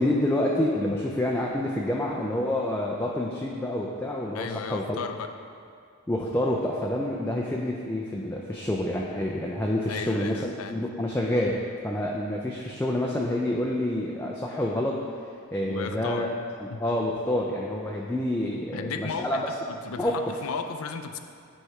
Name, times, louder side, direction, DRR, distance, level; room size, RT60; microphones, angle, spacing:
voice 1, 0.0-5.0 6.1-16.3 16.6-19.4 20.0-20.3, left 1 dB, 10° left, -2 dB, 0.3 m, -28 dB
voice 2, 4.3-5.3 9.9-10.9 15.6-16.3 16.7-16.8 18.7-21.2, left 5 dB, 75° left, 7 dB, 0.4 m, -35 dB
9.1 x 3.2 x 4.7 m, 2.4 s
head